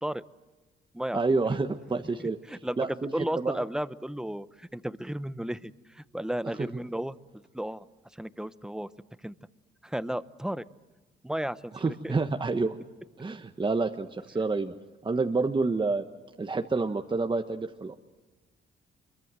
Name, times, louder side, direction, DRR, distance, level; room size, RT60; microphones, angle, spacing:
voice 1, 1.1-2.4 2.8-3.6 6.6-6.7 11.7-12.7 13.2-14.7 15.0-16.1 16.4-17.9, right 3 dB, 25° right, 5 dB, 1.3 m, -28 dB
voice 2, 2.2-7.2 7.5-7.8 8.2-8.9 9.2-9.3 9.8-10.6 11.2-11.7 12.0-12.1, right 1 dB, 5° right, 15 dB, 0.8 m, -34 dB
24.5 x 22.5 x 7.7 m, 1.2 s
cardioid pair, 90°, 20 cm